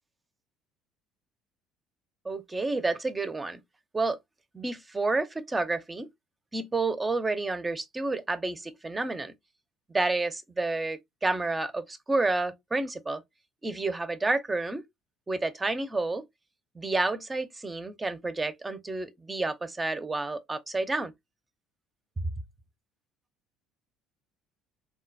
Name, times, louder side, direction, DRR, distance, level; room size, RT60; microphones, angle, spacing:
voice 1, 2.2-3.6 3.9-4.2 4.5-6.1 6.5-9.3 9.9-13.2 13.6-14.8 15.3-16.2 16.7-21.1 22.2-22.3, right 3 dB, 20° right, 0.6 m, -30 dB
3.7 x 2.2 x 2.5 m
hypercardioid pair, 65°, 0 cm